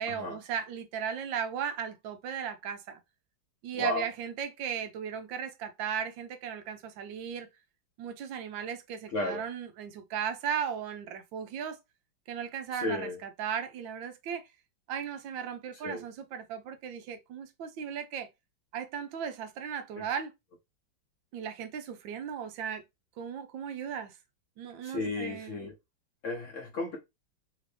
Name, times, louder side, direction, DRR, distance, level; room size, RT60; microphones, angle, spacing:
voice 1, 0.0-3.0 3.6-7.5 8.0-11.8 12.3-14.5 14.9-18.3 18.7-20.3 21.3-22.8 23.2-24.1 24.6-25.6, right 7 dB, 85° right, 1.4 m, -36 dB
voice 2, 3.7-4.1 9.1-9.4 12.7-13.2 15.8-16.0 20.0-20.1 24.8-25.7 26.2-27.0, left 2 dB, 60° left, 0.8 m, -34 dB
3.6 x 2.6 x 3.2 m
omnidirectional pair, 2.0 m